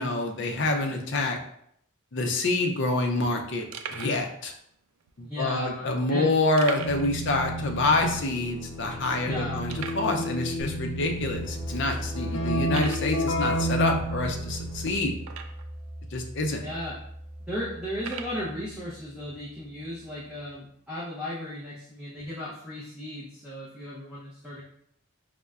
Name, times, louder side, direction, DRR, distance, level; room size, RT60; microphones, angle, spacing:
voice 1, 0.0-1.4 2.1-4.5 5.2-15.1 16.1-16.6, left 2 dB, 55° left, 3 dB, 0.5 m, -27 dB
sound 1, 2.7-2.8 3.2-3.3 3.7-4.2 5.0-5.1 6.6-7.2 7.4-7.5 8.0-8.1 8.7-8.8 9.7-10.1 10.9-11.0 11.6-11.7 12.6-13.1 15.2-15.8 16.5-16.6 17.9-18.4, right 6 dB, 75° right, 0.3 m, -39 dB
voice 2, 5.2-6.3 9.3-9.6 16.6-17.0 17.5-24.6, left 1 dB, 5° right, -9 dB, 0.6 m, -36 dB
Keyboard (musical), 6.8-15.2, right 1 dB, 90° left, 0.7 m, -32 dB
sound 2, 10.6-20.2, right 1 dB, 25° right, 0.8 m, -39 dB
5.3 x 2.1 x 2.3 m, 0.69 s
head